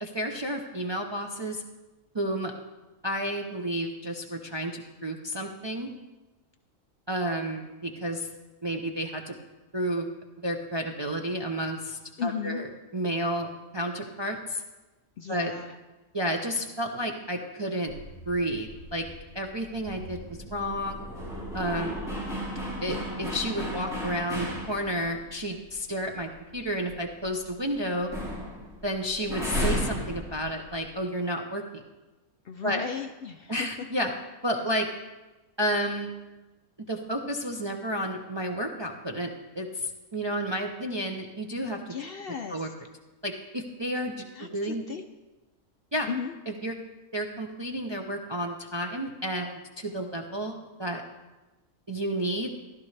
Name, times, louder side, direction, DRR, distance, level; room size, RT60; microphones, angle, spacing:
voice 1, 0.0-1.6 2.1-2.5 3.0-5.9 7.1-8.3 8.6-9.3 9.7-10.1 10.4-12.7 12.9-14.6 15.3-15.5 16.1-17.9 18.3-19.1 19.3-20.2 20.5-21.0 21.5-22.0 22.8-28.1 28.8-31.8 32.6-32.8 33.5-34.1 34.4-34.9 35.6-36.1 36.9-41.9 42.5-42.7 43.2-44.2 44.5-44.8 45.9-46.1 46.5-46.7 47.1-49.5 49.8-51.0 51.9-52.5, equal, 30° right, 2 dB, 0.5 m, -31 dB
voice 2, 12.2-12.7 15.2-15.7 32.4-33.9 41.9-42.7 44.3-45.0 46.1-46.3, left 7 dB, 60° left, 6 dB, 0.6 m, -35 dB
sound 1, 17.9-25.2 25.6-25.7 26.1-27.7 27.9-31.0, equal, ahead, 3.8 m, -35 dB
14.0 x 12.0 x 3.3 m, 1.1 s
omnidirectional pair, 1.4 m